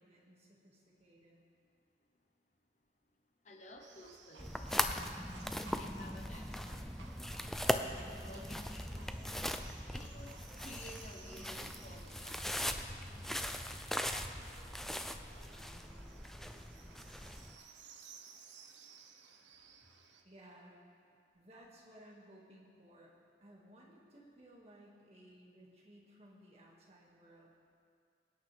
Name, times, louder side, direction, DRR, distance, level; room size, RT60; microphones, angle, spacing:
voice 1, 0.0-1.4 9.0-10.2 12.8-13.5 14.1-14.4 20.2-20.8 21.3-23.1 23.4-27.5, equal, 35° right, -3 dB, 2.0 m, -58 dB
voice 2, 3.4-5.0 5.7-6.9 8.1-9.0 9.9-12.9, left 1 dB, 40° left, 2 dB, 1.0 m, -54 dB
Livestock farm animals working animals, 3.8-20.2, right 5 dB, 85° right, 1.0 m, -58 dB
sound 1, 4.4-17.5, equal, ahead, 0.3 m, -40 dB
23.0 x 9.2 x 3.4 m, 2.3 s
head